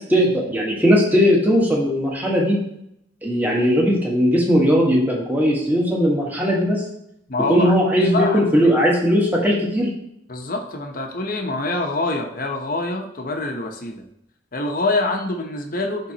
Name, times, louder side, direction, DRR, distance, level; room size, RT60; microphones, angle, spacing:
voice 1, 0.1-2.6 3.2-6.8 7.5-9.9, equal, 10° right, -3 dB, 1.4 m, -18 dB
voice 2, 7.3-8.7 10.3-14.0 14.5-16.1, left 2 dB, 50° left, 3 dB, 0.9 m, -25 dB
11.5 x 3.9 x 2.9 m, 0.76 s
head